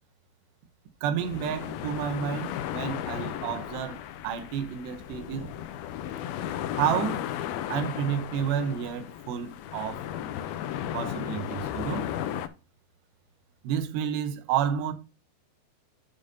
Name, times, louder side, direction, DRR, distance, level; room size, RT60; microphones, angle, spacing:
voice 1, 1.0-5.5 6.7-7.3 7.7-10.0 10.9-12.1 13.6-14.9, right 9 dB, 85° right, 3.1 m, -30 dB
sound 1, 1.2-12.5, left 10 dB, 80° left, 2.3 m, -35 dB
12.0 x 5.1 x 2.7 m
omnidirectional pair, 4.7 m